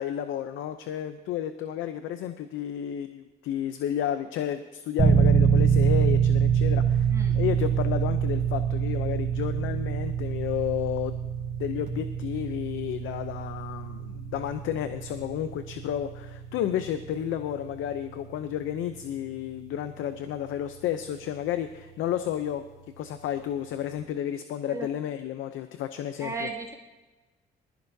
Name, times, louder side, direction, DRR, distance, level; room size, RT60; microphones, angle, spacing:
voice 1, 0.0-7.1 7.3-11.2 11.6-22.6 23.0-26.5, left 10 dB, 85° left, 9 dB, 0.6 m, -31 dB
sound 1, 5.0-21.7, right 7 dB, 50° right, 3.1 m, -26 dB
voice 2, 26.2-26.7, right 3 dB, 15° right, -2 dB, 2.3 m, -35 dB
20.0 x 14.5 x 2.7 m, 1.2 s
cardioid pair, 90°, 20 cm